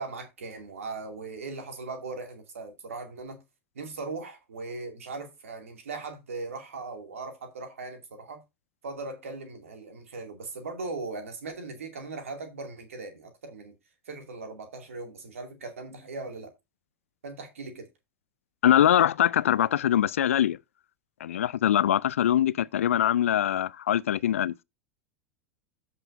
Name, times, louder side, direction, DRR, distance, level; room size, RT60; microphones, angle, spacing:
voice 1, 0.0-3.4 3.7-8.4 8.8-13.7 14.1-16.5 17.2-17.9, right 3 dB, 70° right, 2.5 m, -39 dB
voice 2, 18.6-20.6 21.2-24.5, left 11 dB, 70° left, 0.4 m, -23 dB
14.5 x 5.8 x 2.6 m
figure-of-eight pair, 80°, 8 cm